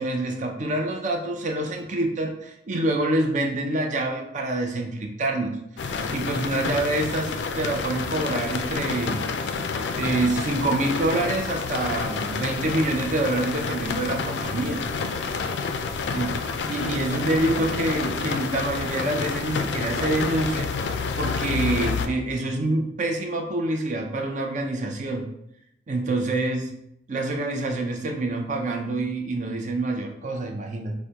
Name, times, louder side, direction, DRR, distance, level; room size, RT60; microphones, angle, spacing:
voice 1, 0.0-14.8 16.1-16.3 16.7-25.3 25.9-26.7 27.1-30.9, right 2 dB, 45° right, 3 dB, 0.5 m, -26 dB
sound 1, 5.8-22.1, left 5 dB, 75° left, 0.3 m, -29 dB
4.7 x 2.1 x 2.8 m, 0.77 s
head